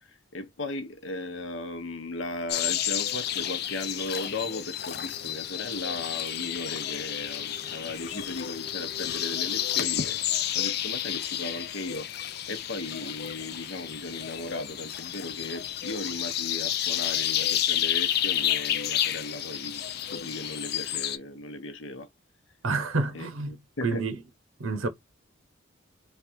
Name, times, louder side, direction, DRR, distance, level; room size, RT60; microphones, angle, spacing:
voice 1, 0.0-12.1 12.5-19.8 20.1-22.1 23.1-24.0, left 2 dB, 70° left, 0.8 m, -37 dB
sound 1, 2.5-21.2, left 11 dB, 50° left, 0.5 m, -30 dB
voice 2, 22.6-23.6 23.8-24.2 24.6-24.9, right 3 dB, 90° right, 0.8 m, -28 dB
3.3 x 2.4 x 4.2 m
head